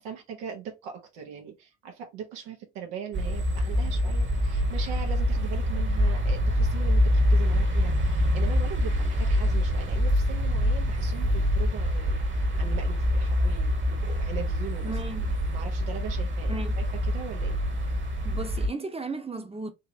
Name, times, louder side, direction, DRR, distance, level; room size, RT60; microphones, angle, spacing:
voice 1, 0.0-12.2 12.6-14.9 15.5-17.6, right 8 dB, 80° right, 1.1 m, -40 dB
sound 1, 3.1-18.7, equal, 35° right, 1.3 m, -25 dB
voice 2, 14.8-15.4 16.5-16.8 18.2-19.7, right 3 dB, 20° right, 0.9 m, -35 dB
3.8 x 2.8 x 2.7 m
hypercardioid pair, 55°, 33 cm